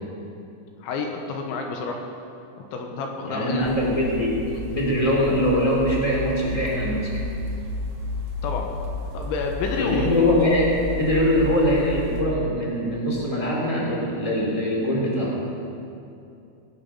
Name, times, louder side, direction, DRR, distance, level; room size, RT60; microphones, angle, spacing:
voice 1, 0.8-2.0 2.7-3.8 8.4-8.7 9.1-10.2, left 4 dB, 75° left, 2 dB, 3.1 m, -29 dB
voice 2, 3.3-4.4 4.7-7.3 9.7-15.4, left 1 dB, 10° left, -4 dB, 1.7 m, -22 dB
sound 1, 3.6-12.2, left 1 dB, 55° right, 2.9 m, -32 dB
21.5 x 8.9 x 5.9 m, 2.6 s
omnidirectional pair, 5.9 m